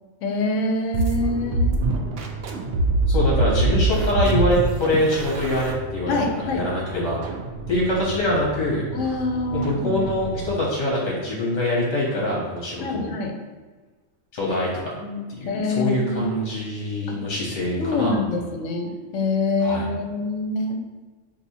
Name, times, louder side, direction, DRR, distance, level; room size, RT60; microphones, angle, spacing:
voice 1, 0.2-1.8 6.1-6.6 8.9-10.1 12.8-13.3 15.0-15.2 15.5-16.5 17.1-17.2 17.8-20.8, left 3 dB, 85° left, 3 dB, 1.0 m, -25 dB
sound 1, 0.9-10.6, right 2 dB, 80° right, 0.9 m, -26 dB
voice 2, 3.1-6.2 6.4-7.2 7.7-8.8 9.5-13.1 14.3-14.9 15.3-18.1 19.6-19.9, left 1 dB, 70° left, -4 dB, 1.3 m, -24 dB
5.4 x 2.7 x 2.7 m, 1.3 s
omnidirectional pair, 1.3 m